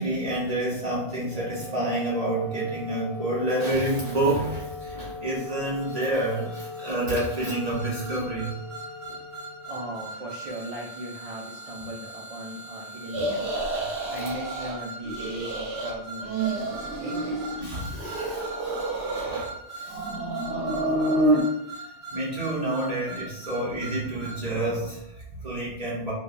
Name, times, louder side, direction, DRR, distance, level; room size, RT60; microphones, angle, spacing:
voice 1, 0.0-8.6 17.6-20.1 21.4-21.5 21.7-26.1, right 1 dB, 40° right, -7 dB, 0.9 m, -29 dB
Wind instrument woodwind instrument, 1.0-10.3, left 3 dB, 70° left, 0.8 m, -40 dB
sound 1, 5.8-24.4, right 3 dB, 10° right, 1.4 m, -41 dB
voice 2, 9.7-13.5 14.1-17.6, right 1 dB, 60° right, -1 dB, 0.4 m, -38 dB
sound 2, 13.1-14.8 15.1-15.9 16.2-17.6 17.9-19.5 19.9-21.4, right 1 dB, 80° right, 1.0 m, -28 dB
4.5 x 2.1 x 2.5 m, 0.79 s
omnidirectional pair, 1.1 m